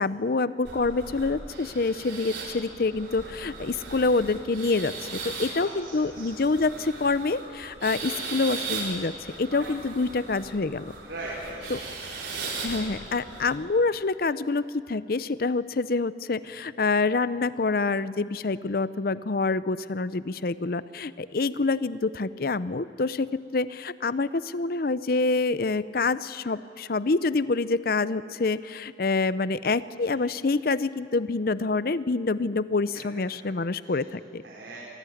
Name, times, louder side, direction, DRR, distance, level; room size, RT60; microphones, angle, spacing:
voice 1, 0.0-4.9 5.2-9.1 9.4-10.8 11.7-11.8 12.6-34.4, left 3 dB, 55° left, 16 dB, 0.6 m, -26 dB
sound 1, 0.6-13.6, right 3 dB, 75° right, 4.6 m, -38 dB
voice 2, 5.5-6.5 8.0-8.4 9.5-9.6 11.0-11.9 29.9-30.3 33.4-33.5 33.8-34.0 34.4-34.8, right 2 dB, 90° right, -5 dB, 4.8 m, -41 dB
25.0 x 17.0 x 9.3 m, 2.5 s
head